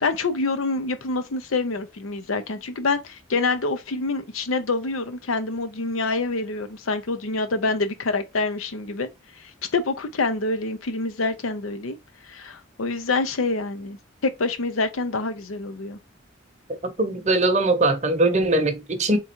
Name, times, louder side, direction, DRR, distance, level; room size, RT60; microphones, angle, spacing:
voice 1, 0.0-9.1 9.4-12.0 12.2-16.0, left 3 dB, 85° left, 0.7 m, -26 dB
voice 2, 17.0-19.2, right 2 dB, 35° right, 0.7 m, -21 dB
3.6 x 3.0 x 4.4 m
head